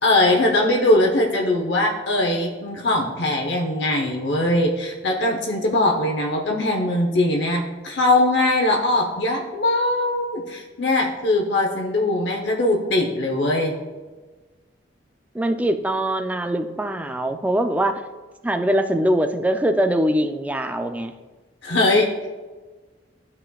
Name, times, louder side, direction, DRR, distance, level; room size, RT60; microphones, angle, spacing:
voice 1, 0.0-13.8 21.6-22.1, left 1 dB, 65° left, 1 dB, 0.8 m, -21 dB
voice 2, 15.3-18.0 18.4-21.1, right 1 dB, 10° right, 7 dB, 0.3 m, -22 dB
12.5 x 4.3 x 2.3 m, 1.3 s
head